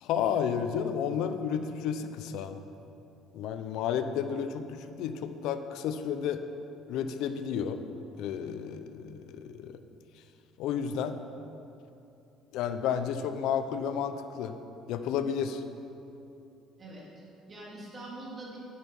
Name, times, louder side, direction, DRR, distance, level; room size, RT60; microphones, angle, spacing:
voice 1, 0.0-2.6 3.3-6.4 6.9-7.8 8.2-9.8 10.6-11.2 12.5-14.6 14.9-15.6, left 8 dB, 75° left, 9 dB, 0.7 m, -32 dB
voice 2, 16.8-18.6, right 2 dB, 30° right, -5 dB, 2.9 m, -44 dB
10.5 x 9.0 x 5.4 m, 2.9 s
cardioid pair, 140°, 0 cm